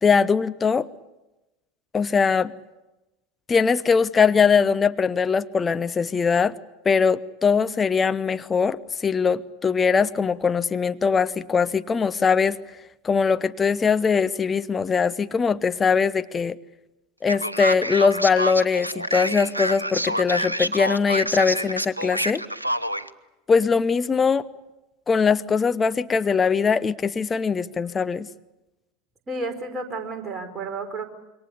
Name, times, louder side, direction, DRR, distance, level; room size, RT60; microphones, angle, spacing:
voice 1, 0.0-0.9 1.9-2.5 3.5-6.5 6.8-12.6 13.0-16.6 17.2-22.4 23.5-24.4 25.1-28.3, left 5 dB, 20° left, 12 dB, 0.8 m, -21 dB
Male speech man speaking, 17.3-23.1, right 1 dB, 90° right, 1.0 m, -27 dB
voice 2, 29.3-31.1, right 3 dB, 20° right, 4 dB, 4.8 m, -31 dB
27.0 x 23.5 x 8.5 m, 1.0 s
figure-of-eight pair, 80°, 0 cm